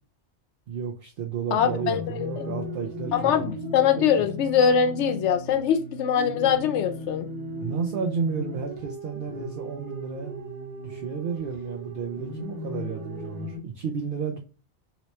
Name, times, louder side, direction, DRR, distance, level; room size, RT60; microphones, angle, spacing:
voice 1, 0.7-3.5 4.0-4.3 7.6-10.3 10.8-14.4, right 6 dB, 60° right, 0.7 m, -32 dB
voice 2, 1.5-2.5 3.1-7.3, left 8 dB, 90° left, 0.9 m, -23 dB
sound 1, 1.6-13.6, left 1 dB, 85° right, 1.3 m, -37 dB
3.0 x 2.8 x 3.1 m
omnidirectional pair, 1.2 m